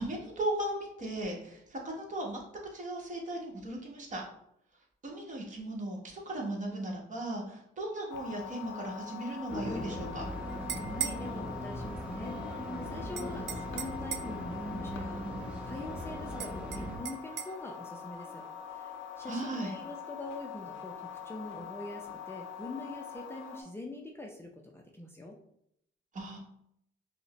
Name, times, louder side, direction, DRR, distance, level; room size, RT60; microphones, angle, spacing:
voice 1, 0.0-2.4 2.7-4.2 5.0-10.2 19.2-19.7 26.1-26.4, right 1 dB, 40° right, 0 dB, 1.2 m, -37 dB
sound 1, 8.1-23.6, left 7 dB, 90° left, 0.6 m, -44 dB
sound 2, 9.5-17.0, equal, 5° right, 0.9 m, -39 dB
sound 3, 10.5-11.2 13.2-14.4 16.4-17.5, right 9 dB, 65° right, 0.4 m, -38 dB
voice 2, 10.9-15.3 15.6-18.4 18.7-18.9 19.2-25.4, left 2 dB, 10° left, 0 dB, 0.5 m, -44 dB
5.2 x 2.1 x 3.0 m, 0.73 s
cardioid pair, 90°, 20 cm